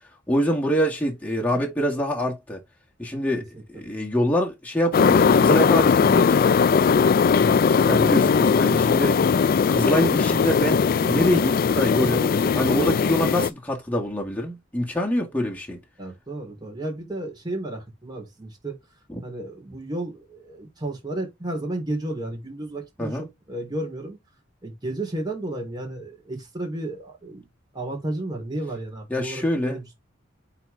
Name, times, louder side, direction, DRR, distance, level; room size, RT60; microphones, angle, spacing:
voice 1, 0.3-2.6 3.0-3.5 3.7-6.4 7.9-9.2 9.7-15.8 19.1-19.2 23.0-23.3 29.1-29.8, equal, 10° left, 1.9 m, -25 dB
sound 1, 4.9-13.5, left 6 dB, 45° left, 0.3 m, -19 dB
voice 2, 7.4-8.7 9.2-9.4 16.0-18.8 19.2-24.2 24.6-27.5 27.7-29.9, right 1 dB, 20° right, 3.7 m, -33 dB
8.9 x 4.0 x 3.4 m
head